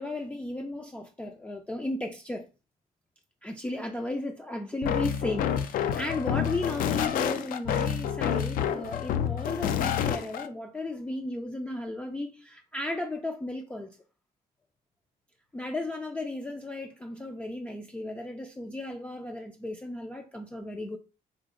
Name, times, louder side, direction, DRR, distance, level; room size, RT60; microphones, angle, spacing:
voice 1, 0.0-2.5 3.4-14.0 15.5-21.0, left 2 dB, 10° left, 0.4 m, -35 dB
sound 1, 4.8-10.5, left 9 dB, 70° left, 0.4 m, -28 dB
3.9 x 2.4 x 3.6 m
cardioid pair, 145°, 15 cm